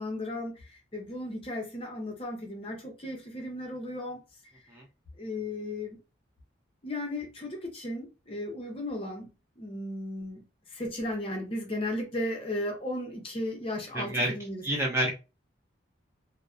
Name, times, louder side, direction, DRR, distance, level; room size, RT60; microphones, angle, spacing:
voice 1, 0.0-4.2 5.2-6.0 6.8-9.3 9.6-10.5 10.7-14.6, left 1 dB, 30° left, 0.6 m, -35 dB
voice 2, 13.9-14.3 14.6-15.1, right 1 dB, 15° right, 0.4 m, -28 dB
2.6 x 2.0 x 2.3 m
head